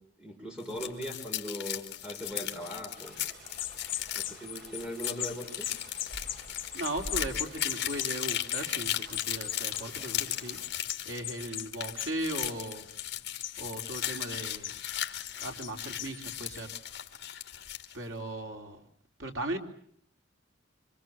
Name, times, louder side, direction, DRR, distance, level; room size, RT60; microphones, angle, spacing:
voice 1, 0.2-3.2 4.2-5.7, equal, 5° right, 5.4 m, -39 dB
sound 1, 0.6-18.0, left 12 dB, 55° left, 2.7 m, -37 dB
Stream, 3.0-10.7, right 1 dB, 55° right, 4.0 m, -48 dB
sound 2, 3.6-16.6, left 14 dB, 80° left, 1.8 m, -40 dB
voice 2, 6.7-10.6 11.1-12.9 13.6-14.8 15.4-16.7 17.9-18.8 19.2-19.6, right 1 dB, 80° right, 3.6 m, -37 dB
26.0 x 26.0 x 7.5 m
head